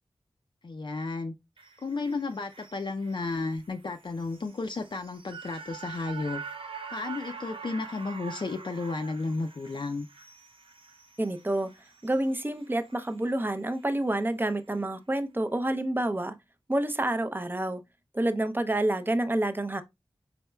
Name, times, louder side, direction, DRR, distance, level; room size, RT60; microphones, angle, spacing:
voice 1, 0.6-1.3 1.8-6.4 6.9-10.1, left 3 dB, 50° left, 0.4 m, -33 dB
sound 1, 1.6-13.9 14.2-14.3, right 5 dB, 60° right, 0.6 m, -45 dB
voice 2, 11.2-11.7 12.0-16.4 16.7-17.8 18.1-19.8, right 1 dB, 20° right, 0.6 m, -28 dB
4.2 x 3.9 x 2.2 m
wide cardioid pair, 65°, 10 cm